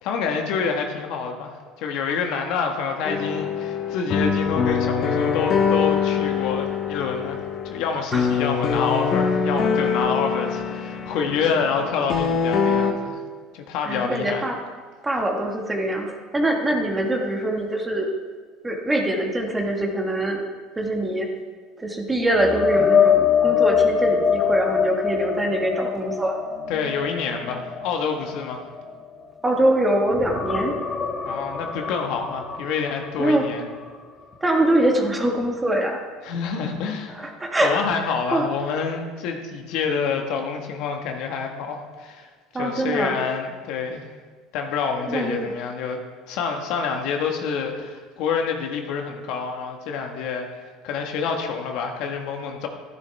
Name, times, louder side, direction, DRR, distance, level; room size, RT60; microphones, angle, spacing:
voice 1, 0.0-7.4 7.6-13.2 13.5-14.4 26.7-28.6 31.2-33.7 36.2-37.3 37.6-42.3 42.5-44.0 44.5-46.0 46.3-52.7, left 5 dB, 65° left, 3 dB, 1.5 m, -27 dB
sound 1, 3.0-12.9, left 6 dB, 45° left, 1.4 m, -24 dB
voice 2, 8.1-8.4 13.8-14.6 15.0-18.1 18.6-20.4 20.8-21.3 21.8-26.4 29.4-30.7 33.2-33.5 34.4-36.0 37.1-38.7 42.5-43.2 45.1-45.5, right 1 dB, 15° right, 1 dB, 1.7 m, -23 dB
sound 2, 22.3-29.7 30.1-34.0 34.3-34.6 37.9-38.0, left 7 dB, 30° left, 1.6 m, -24 dB
13.0 x 11.0 x 3.5 m, 1.5 s
supercardioid pair, 110°, 0 cm